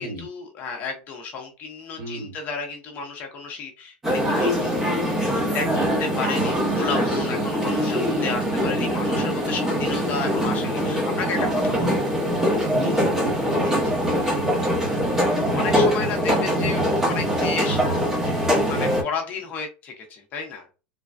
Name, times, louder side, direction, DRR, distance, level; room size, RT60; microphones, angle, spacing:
voice 1, 0.0-5.3 5.5-5.7 6.0-12.0 14.2-14.4 14.8-15.0 15.5-18.1 18.7-20.6, left 5 dB, 35° left, 3 dB, 0.8 m, -33 dB
voice 2, 2.0-2.3 5.6-5.9 11.7-12.0 12.7-14.0 18.7-19.0, right 1 dB, 35° right, -2 dB, 1.5 m, -34 dB
sound 1, 4.0-19.0, equal, 10° right, 0.9 m, -23 dB
3.3 x 2.2 x 2.5 m, 0.31 s
supercardioid pair, 155°, 5 cm